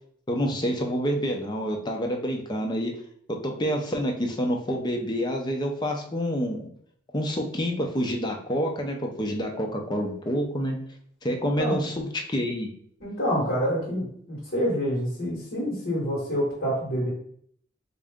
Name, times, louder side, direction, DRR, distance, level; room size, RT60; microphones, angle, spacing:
voice 1, 0.3-2.9 3.4-6.7 7.1-10.8 11.2-12.7, equal, 20° left, 2 dB, 0.5 m, -28 dB
voice 2, 13.0-17.1, equal, 50° left, -6 dB, 1.2 m, -27 dB
3.6 x 2.5 x 3.4 m, 0.64 s
head